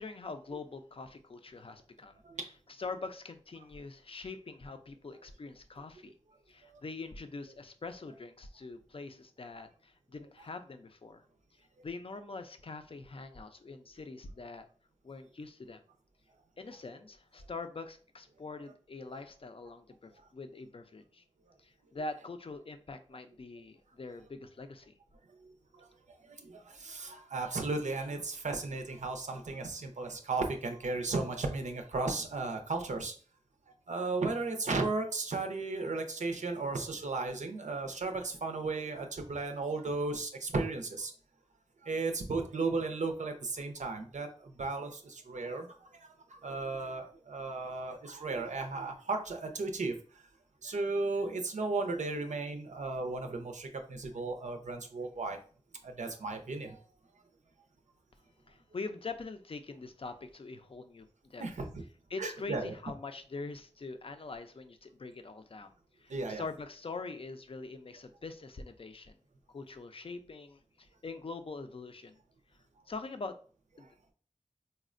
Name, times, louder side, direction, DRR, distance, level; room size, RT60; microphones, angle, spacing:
voice 1, 0.0-2.2 2.7-6.1 6.5-11.2 11.6-14.7 15.0-15.8 16.6-21.2 21.6-24.9 58.5-61.4 62.1-65.7 66.0-69.2 69.5-72.2 72.9-73.4 73.8-74.1, left 3 dB, 50° left, 8 dB, 0.4 m, -44 dB
voice 2, 26.2-33.1 33.9-41.1 41.8-50.2 50.6-55.4 55.8-56.8 61.4-61.7 62.2-62.7 66.1-66.4, right 3 dB, 85° right, 4 dB, 0.5 m, -35 dB
4.1 x 2.1 x 2.5 m, 0.41 s
wide cardioid pair, 45°, 12 cm